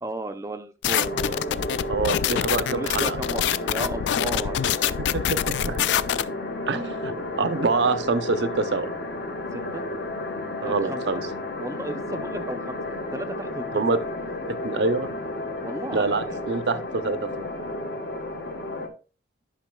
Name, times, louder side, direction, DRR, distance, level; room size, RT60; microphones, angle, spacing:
voice 1, 0.0-1.1 2.5-4.9 9.5-9.8 10.7-11.0 11.6-14.0 15.6-16.4, right 2 dB, 15° right, 9 dB, 0.4 m, -35 dB
sound 1, 0.8-6.2, left 10 dB, 75° left, 0.3 m, -25 dB
sound 2, 1.0-18.9, left 2 dB, 60° left, 1.1 m, -32 dB
voice 2, 1.9-3.2 5.1-5.8 6.7-8.9 10.6-11.2 13.7-14.0 14.5-15.1 15.9-17.5, right 4 dB, 70° right, 12 dB, 0.6 m, -26 dB
10.5 x 5.7 x 2.2 m, 0.34 s
head